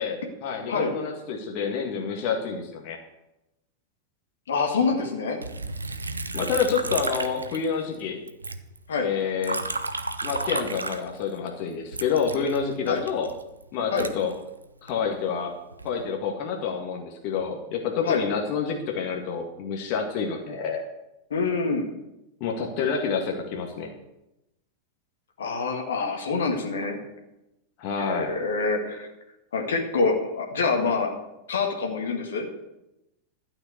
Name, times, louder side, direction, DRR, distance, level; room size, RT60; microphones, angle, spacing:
voice 1, 0.0-3.0 6.3-8.2 9.0-9.6 10.2-13.3 13.7-14.3 14.8-15.5 15.8-20.8 22.4-23.9 27.8-28.3, left 6 dB, 45° left, 2 dB, 1.9 m, -28 dB
voice 2, 4.5-5.4 8.9-9.1 12.9-13.0 13.9-14.1 18.0-18.2 21.3-21.9 25.4-27.0 28.0-29.1 29.5-31.1 31.5-32.5, left 4 dB, 65° left, 2 dB, 2.0 m, -26 dB
Liquid, 5.4-8.0 8.3-11.5 11.9-14.9 15.5-16.0, right 3 dB, 80° right, 0.8 m, -33 dB
12.5 x 5.9 x 8.1 m, 0.92 s
figure-of-eight pair, 90°, 0 cm